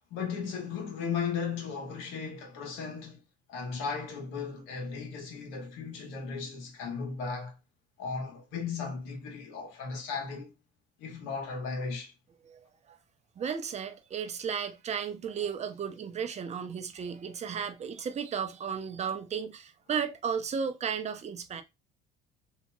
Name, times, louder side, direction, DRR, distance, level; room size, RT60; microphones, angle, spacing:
voice 1, 0.1-3.2 3.5-7.5 8.0-10.5 11.0-12.1, left 5 dB, 75° left, 1.3 m, -36 dB
voice 2, 13.4-21.6, right 7 dB, 35° right, 0.6 m, -34 dB
2.9 x 2.7 x 2.3 m
supercardioid pair, 80°, 20 cm